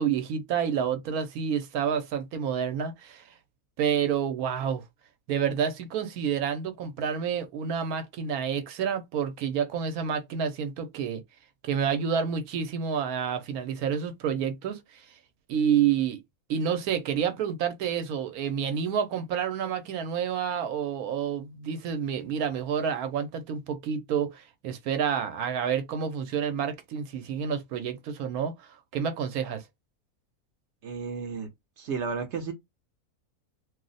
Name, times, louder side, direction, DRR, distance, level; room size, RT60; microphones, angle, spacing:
voice 1, 0.0-3.3 3.8-4.8 5.3-11.2 11.6-15.1 15.5-16.2 16.5-29.6, right 7 dB, 75° right, 1.1 m, -29 dB
voice 2, 30.8-31.5 31.8-32.5, right 5 dB, 60° right, 0.8 m, -32 dB
2.6 x 2.0 x 3.8 m
omnidirectional pair, 1.6 m